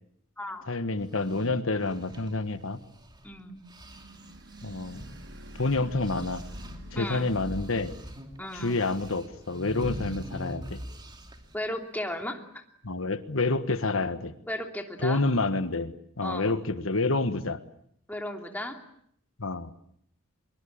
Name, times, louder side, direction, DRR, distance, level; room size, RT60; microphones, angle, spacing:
voice 1, 0.7-2.8 4.6-5.1 5.6-6.4 6.9-7.9 8.6-10.8 12.8-14.3 15.0-17.6 19.4-19.7, left 3 dB, 70° left, 11 dB, 1.5 m, -28 dB
sound 1, 1.0-3.4 3.7-11.6, equal, 20° right, 2.8 m, -43 dB
voice 2, 3.2-3.6 6.9-7.3 8.4-8.8 11.5-12.6 14.5-15.2 16.2-16.6 18.1-18.8, left 1 dB, 10° left, 4 dB, 3.0 m, -35 dB
sound 2, 3.8-12.1, equal, 60° right, 4.1 m, -49 dB
24.5 x 23.0 x 8.8 m, 0.67 s
head